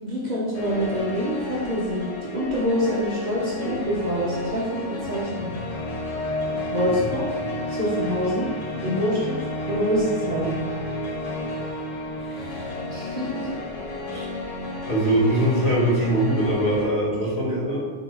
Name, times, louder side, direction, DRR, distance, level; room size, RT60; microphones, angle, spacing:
voice 1, 0.0-5.5 6.7-7.2 7.7-8.5 8.8-9.4 9.6-10.5 12.9-13.5, equal, 45° right, -6 dB, 0.9 m, -26 dB
sound 1, 0.5-16.8, left 1 dB, 45° left, 0.5 m, -31 dB
voice 2, 12.2-12.7 14.1-14.3 14.9-17.9, right 1 dB, 60° left, -7 dB, 1.6 m, -23 dB
3.8 x 3.8 x 2.9 m, 1.4 s
omnidirectional pair, 1.2 m